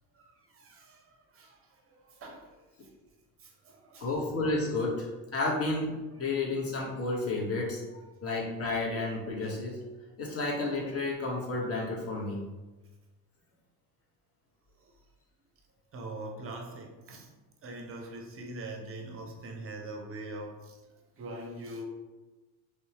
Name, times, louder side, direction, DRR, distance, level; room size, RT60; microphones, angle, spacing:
voice 1, 0.1-1.6 1.9-2.6 3.4-4.1 7.9-8.1 9.4-9.5 14.8-14.9 15.9-17.3 17.6-20.8 21.2-21.8, right 2 dB, 30° right, 3 dB, 0.6 m, -43 dB
voice 2, 4.0-7.8 8.2-9.8 10.2-12.4, left 2 dB, 30° left, -3 dB, 0.9 m, -31 dB
2.7 x 2.1 x 2.8 m, 1.2 s
hypercardioid pair, 65°, 47 cm